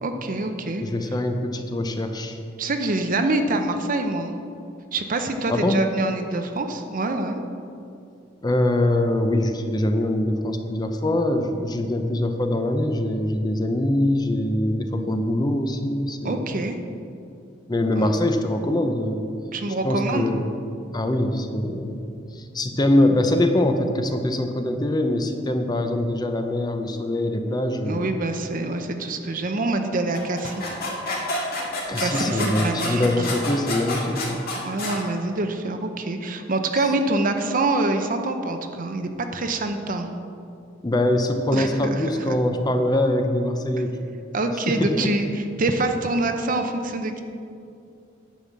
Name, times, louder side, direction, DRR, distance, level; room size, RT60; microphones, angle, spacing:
voice 1, 0.0-0.8 2.6-4.3 4.9-7.4 16.2-16.8 18.0-18.1 19.5-20.3 27.9-30.6 32.0-33.1 34.6-40.1 41.5-42.4 44.3-47.2, right 2 dB, 45° right, 6 dB, 0.7 m, -25 dB
voice 2, 0.8-2.4 5.5-5.8 8.4-16.5 17.7-19.3 19.8-20.4 20.9-22.1 22.3-28.1 31.9-34.4 36.8-36.9 40.8-44.1 44.7-45.1, left 1 dB, 20° left, 6 dB, 0.6 m, -23 dB
sound 1, 30.1-35.0, left 2 dB, 50° left, 2.2 m, -29 dB
10.0 x 5.5 x 7.4 m, 2.6 s
head